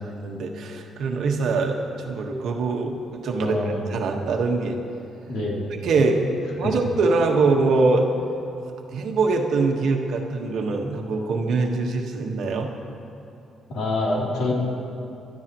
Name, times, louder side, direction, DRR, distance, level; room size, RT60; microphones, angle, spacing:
voice 1, 0.0-1.8 2.0-3.6 3.9-4.8 5.8-6.2 6.6-8.1 8.9-12.7, right 3 dB, 70° right, 2 dB, 1.5 m, -23 dB
voice 2, 3.4-4.1 5.3-5.7 6.6-6.7 13.7-14.5, left 2 dB, 75° left, -4 dB, 3.3 m, -26 dB
22.5 x 12.5 x 3.1 m, 2.7 s
cardioid pair, 90°, 0 cm